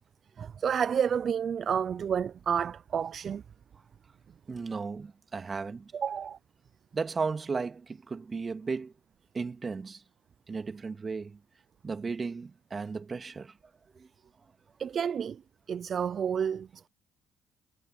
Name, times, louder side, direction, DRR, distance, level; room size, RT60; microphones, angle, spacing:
voice 1, 0.4-3.4 5.9-6.4 14.8-15.4 15.7-16.9, right 7 dB, 50° right, 0.7 m, -30 dB
voice 2, 4.5-5.9 6.9-8.9 9.3-10.0 10.5-11.4 11.8-13.5 13.9-14.1, right 4 dB, 35° right, 2.6 m, -35 dB
hypercardioid pair, 55°, 0 cm